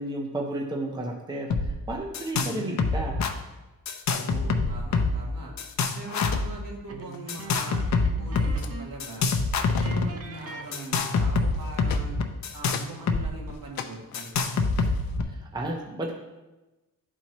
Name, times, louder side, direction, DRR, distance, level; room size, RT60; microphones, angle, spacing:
voice 1, 0.0-3.2 9.8-10.1 15.2-16.1, right 1 dB, 10° right, 0 dB, 0.7 m, -33 dB
sound 1, 1.5-1.7 1.9-2.5 2.8-3.3 3.9-5.3 5.6-6.5 7.3-8.5 9.0-10.1 10.7-13.2 13.5-13.6 14.1-15.2, left 4 dB, 55° left, 0.7 m, -25 dB
voice 2, 2.3-2.9 4.2-5.5 5.9-7.8 8.2-9.4 9.8-12.2 12.5-14.5, right 2 dB, 70° right, -2 dB, 2.2 m, -41 dB
sound 2, 6.3-7.7 7.9-8.0 8.3-8.8 9.1-9.5 9.8-13.0 13.5-15.2, left 7 dB, 90° left, 0.7 m, -42 dB
sound 3, 6.9-9.1 9.3-9.5 9.8-11.4, right 4 dB, 45° right, 0.8 m, -43 dB
12.0 x 4.4 x 3.0 m, 1.1 s
wide cardioid pair, 155°, 34 cm